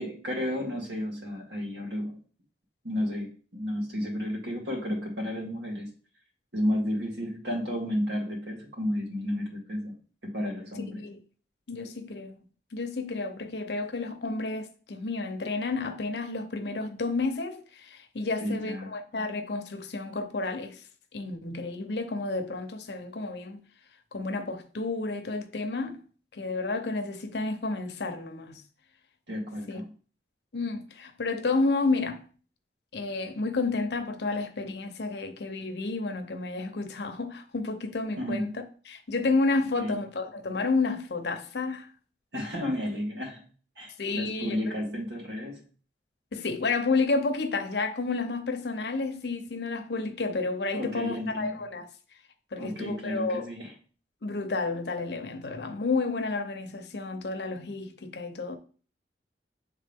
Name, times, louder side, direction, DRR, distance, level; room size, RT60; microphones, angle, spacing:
voice 1, 0.0-2.2 2.8-5.9 6.5-10.0 10.2-11.0 18.4-18.9 29.3-29.9 38.2-38.5 39.8-40.0 42.3-43.5 43.8-45.6 50.7-51.6 52.5-53.7, left 1 dB, 80° right, 1.9 m, -32 dB
voice 2, 11.7-12.4 12.7-20.8 21.1-23.6 24.1-26.0 26.3-28.6 29.7-29.8 30.5-32.2 32.9-38.5 38.9-41.9 44.0-44.7 46.3-51.9 52.5-53.5 54.2-58.6, left 3 dB, 70° left, 0.7 m, -31 dB
7.4 x 3.6 x 3.5 m
head